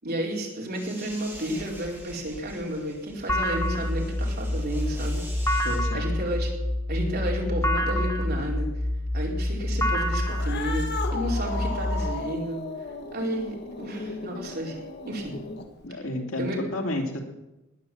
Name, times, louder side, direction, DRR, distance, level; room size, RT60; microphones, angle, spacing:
voice 1, 0.0-5.2 5.6-5.7 5.9-6.5 6.9-8.7 9.1-12.6 13.1-15.4 16.4-16.6, right 1 dB, 45° right, -1 dB, 4.3 m, -32 dB
sound 1, 0.7-5.8, right 1 dB, 10° right, 5.6 m, -44 dB
sound 2, 3.3-12.0, left 1 dB, 15° left, 1.1 m, -27 dB
voice 2, 5.6-6.1 15.8-17.2, left 1 dB, 70° left, 2 dB, 2.9 m, -31 dB
Cat, 10.2-15.9, left 3 dB, 50° left, 1.8 m, -36 dB
19.5 x 9.5 x 7.6 m, 0.98 s
head